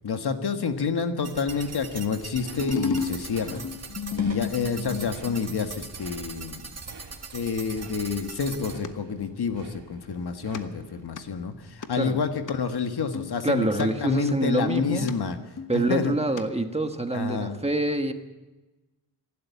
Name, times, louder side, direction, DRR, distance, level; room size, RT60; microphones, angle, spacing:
voice 1, 0.0-3.7 4.1-6.6 7.3-15.4 15.7-16.1 17.1-17.6, left 5 dB, 65° left, 6 dB, 1.7 m, -28 dB
sound 1, 1.2-8.7, right 4 dB, 40° right, 1.9 m, -40 dB
sound 2, 1.5-12.8, right 5 dB, 80° right, 2.4 m, -51 dB
sound 3, 2.4-5.5 8.6-8.9 10.5-10.6 11.0-11.2 11.8-11.9 12.5-12.6 13.1-13.8 14.3-15.1 15.6-16.4 16.7-16.8, left 5 dB, 45° left, 1.3 m, -32 dB
voice 2, 13.4-15.1 15.7-18.1, right 2 dB, 15° right, 6 dB, 1.4 m, -26 dB
26.5 x 12.0 x 8.4 m, 1.1 s
wide cardioid pair, 125°, 42 cm